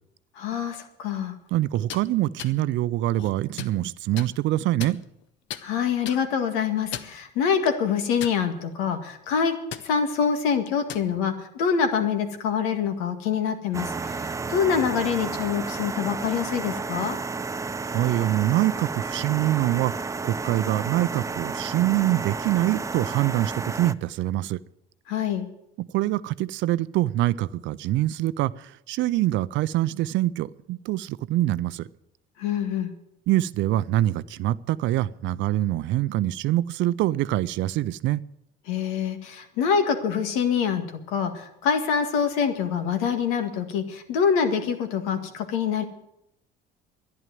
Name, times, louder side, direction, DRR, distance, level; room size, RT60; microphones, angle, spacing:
voice 1, 0.4-1.3 5.6-9.5 9.8-17.2 25.1-25.5 32.4-32.9 38.7-40.8 41.1-45.8, left 7 dB, 90° left, 7 dB, 1.9 m, -25 dB
voice 2, 1.5-5.0 17.9-24.6 25.8-31.9 33.3-38.2, right 15 dB, 65° right, 18 dB, 0.5 m, -25 dB
sound 1, 1.7-2.0 2.4-2.5 3.1-3.8 4.2-4.3 4.8-5.2 5.5-5.6 6.0-6.2 6.8-7.2 7.7-7.8 8.2-8.7 9.1-9.3 9.7-9.9 10.7-11.1, left 10 dB, 70° left, 1.0 m, -36 dB
sound 2, 13.7-23.9, right 4 dB, 15° right, 0.5 m, -32 dB
11.5 x 10.5 x 9.2 m, 0.79 s
cardioid pair, 100°, 21 cm